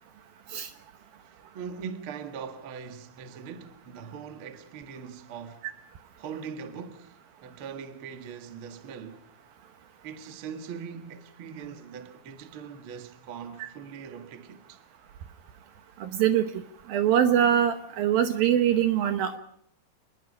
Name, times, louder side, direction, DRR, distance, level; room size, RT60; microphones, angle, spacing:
voice 1, 1.5-5.7 6.2-9.2 10.0-14.8, right 6 dB, 55° right, 1.5 m, -41 dB
voice 2, 16.0-16.5 16.9-19.4, right 10 dB, 70° right, 2.5 m, -23 dB
28.5 x 20.0 x 5.4 m
omnidirectional pair, 5.0 m